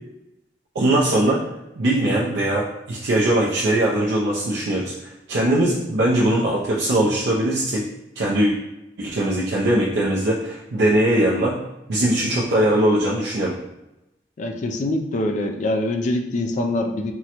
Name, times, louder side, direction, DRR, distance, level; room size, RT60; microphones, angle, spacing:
voice 1, 0.7-1.4 1.8-7.9 8.2-8.5 9.0-11.6 11.9-13.6, right 1 dB, 75° right, -5 dB, 0.5 m, -20 dB
voice 2, 14.4-17.1, left 1 dB, 45° left, 4 dB, 0.3 m, -24 dB
3.6 x 2.1 x 2.9 m, 0.93 s
head